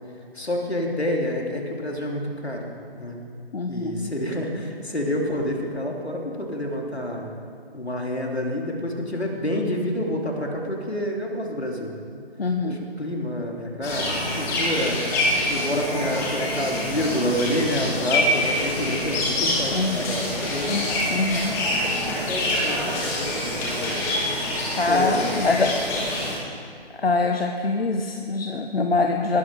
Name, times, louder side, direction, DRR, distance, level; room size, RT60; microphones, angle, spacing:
voice 1, 0.3-2.7 3.0-3.2 3.7-7.3 7.7-12.2 12.6-15.0 15.4-20.8 21.5-24.0 24.9-25.7 25.9-26.2, equal, 90° left, 0 dB, 3.1 m, -28 dB
voice 2, 3.5-4.1 12.4-12.8 19.7-20.1 20.7-21.6 24.8-25.7 27.0-29.4, left 3 dB, 65° left, 4 dB, 1.1 m, -24 dB
sound 1, 13.8-26.3, left 1 dB, 10° left, 1.6 m, -26 dB
20.0 x 11.5 x 4.9 m, 2.3 s
figure-of-eight pair, 155°, 31 cm